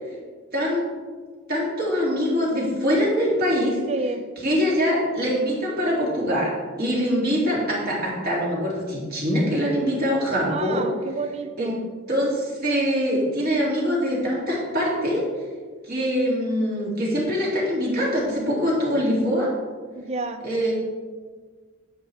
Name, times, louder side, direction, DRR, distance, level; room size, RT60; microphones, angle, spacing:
voice 1, 0.5-0.8 1.5-3.8 4.4-6.5 6.8-10.8 11.6-11.8 12.1-15.3 15.8-19.5 20.4-20.7, equal, 45° right, -5 dB, 2.6 m, -23 dB
voice 2, 3.9-4.2 10.5-11.8 20.0-20.4, right 3 dB, 30° right, 8 dB, 0.4 m, -30 dB
9.9 x 7.7 x 3.4 m, 1.5 s
head